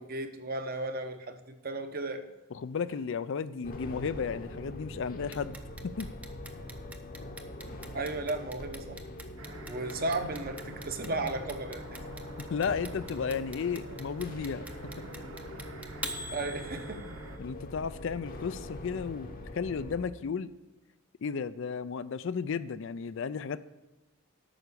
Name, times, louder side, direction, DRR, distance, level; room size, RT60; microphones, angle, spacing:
voice 1, 0.0-2.2 7.9-9.0 9.7-12.1 16.3-17.2, right 2 dB, 45° right, 8 dB, 0.8 m, -35 dB
voice 2, 2.5-5.6 5.8-6.1 12.5-14.7 17.4-20.5 21.2-23.6, left 6 dB, 60° left, 15 dB, 0.4 m, -34 dB
sound 1, 3.6-20.1, left 1 dB, 40° left, 0.9 m, -43 dB
Clock, 5.3-17.3, right 1 dB, 5° right, 0.6 m, -43 dB
sound 2, 9.4-17.4, right 2 dB, 60° right, 1.2 m, -47 dB
9.0 x 6.0 x 6.8 m, 1.0 s
head